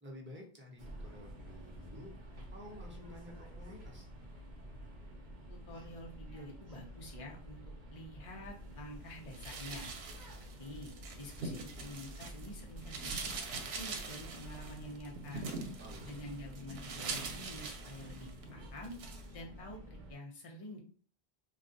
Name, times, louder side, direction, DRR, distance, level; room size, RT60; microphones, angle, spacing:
voice 1, 0.0-4.1 15.8-16.1, left 1 dB, 15° right, -1 dB, 0.7 m, -51 dB
sound 1, 0.8-20.1, equal, 50° right, 0.8 m, -50 dB
voice 2, 5.5-9.9 10.6-10.9 11.2-15.5 16.0-18.9 19.3-20.8, left 1 dB, 35° left, -1 dB, 0.7 m, -48 dB
sound 2, 9.3-12.5 12.8-18.4 18.8-19.3, right 4 dB, 80° right, 0.8 m, -43 dB
2.4 x 2.3 x 3.8 m, 0.42 s
omnidirectional pair, 1.0 m